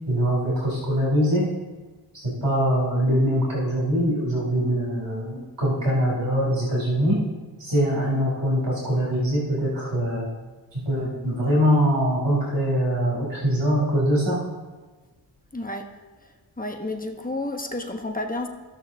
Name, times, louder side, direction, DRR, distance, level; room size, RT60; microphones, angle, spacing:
voice 1, 0.1-1.5 2.1-7.2 7.6-10.3 10.7-14.4, equal, 70° right, -5 dB, 3.2 m, -23 dB
voice 2, 15.5-15.9 16.6-18.5, left 2 dB, 20° left, 4 dB, 1.1 m, -30 dB
16.0 x 6.4 x 2.8 m, 1.2 s
cardioid pair, 40°, 44 cm